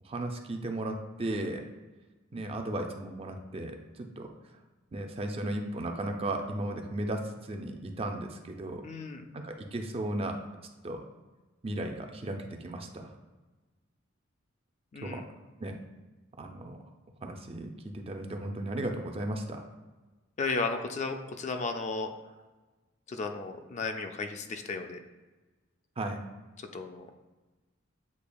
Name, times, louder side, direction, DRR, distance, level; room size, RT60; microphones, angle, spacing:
voice 1, 0.0-1.6 2.3-4.3 4.9-8.8 9.3-10.4 10.8-11.0 11.6-13.1 15.0-15.2 15.6-15.7 16.4-16.8 17.2-19.7 26.0-26.2, right 1 dB, 30° right, 4 dB, 0.4 m, -35 dB
voice 2, 8.8-9.2 14.9-15.2 20.4-22.1 23.1-25.0 26.7-27.1, left 3 dB, 35° left, 5 dB, 0.3 m, -34 dB
8.2 x 2.8 x 2.3 m, 1.2 s
head